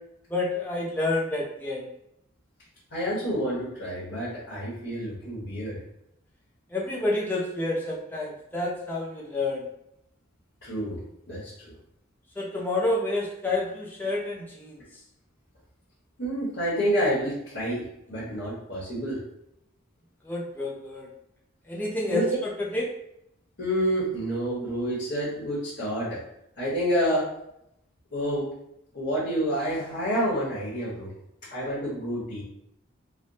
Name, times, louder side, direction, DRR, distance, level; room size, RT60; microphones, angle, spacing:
voice 1, 0.3-1.9 6.7-9.6 12.4-14.7 20.2-21.1 21.7-22.9, left 2 dB, 10° left, -3 dB, 0.5 m, -29 dB
voice 2, 2.9-5.8 10.6-11.0 11.3-11.7 16.2-19.2 22.1-22.3 23.6-26.2 26.6-27.3 28.1-28.5 28.9-31.1 31.5-32.4, equal, 70° left, -9 dB, 1.2 m, -28 dB
3.4 x 2.2 x 2.6 m, 0.79 s
head